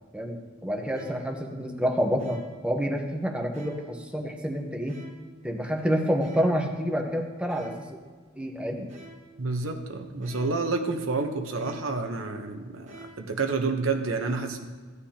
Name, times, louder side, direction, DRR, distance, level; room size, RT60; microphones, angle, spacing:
voice 1, 0.6-2.4 2.6-5.0 5.4-7.7 8.4-8.9, equal, 5° right, 2 dB, 1.0 m, -28 dB
sound 1, 0.9-1.4 2.2-2.7 3.5-4.0 4.9-5.4 6.2-6.7 7.5-8.0 8.9-9.4 10.2-10.7 11.6-12.1 12.9-13.4, right 2 dB, 35° right, 1.4 m, -49 dB
voice 2, 9.4-14.7, right 3 dB, 85° right, 4 dB, 1.0 m, -29 dB
15.0 x 9.6 x 2.9 m, 1.5 s
head